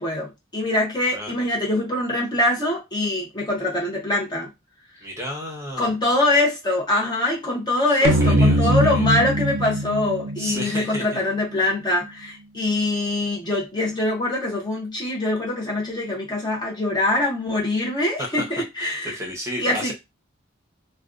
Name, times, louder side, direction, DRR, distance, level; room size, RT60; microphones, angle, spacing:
voice 1, 0.0-4.5 5.8-19.2 19.6-19.9, left 2 dB, 20° left, 0.6 m, -23 dB
voice 2, 5.0-5.9 7.9-9.1 10.4-11.2 18.3-18.4 18.8-19.9, equal, 15° right, 0.7 m, -33 dB
sound 1, 8.0-11.5, right 1 dB, 65° right, 0.4 m, -22 dB
2.4 x 2.2 x 2.4 m
head